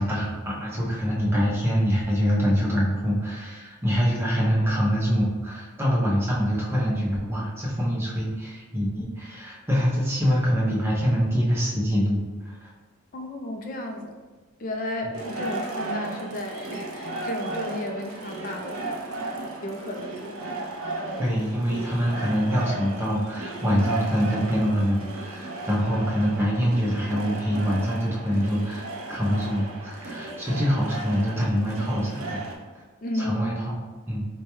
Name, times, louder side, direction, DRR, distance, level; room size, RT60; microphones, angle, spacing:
voice 1, 0.0-12.7 21.2-28.8 29.1-32.4 33.1-33.7 34.1-34.3, equal, 10° right, -5 dB, 0.7 m, -25 dB
voice 2, 13.1-14.1 14.6-19.1 19.6-20.4 20.7-20.9 33.0-33.4, left 1 dB, 40° left, 3 dB, 0.4 m, -33 dB
sound 1, 15.1-32.5, right 2 dB, 90° right, 0.6 m, -35 dB
4.5 x 2.2 x 3.0 m, 1.3 s
head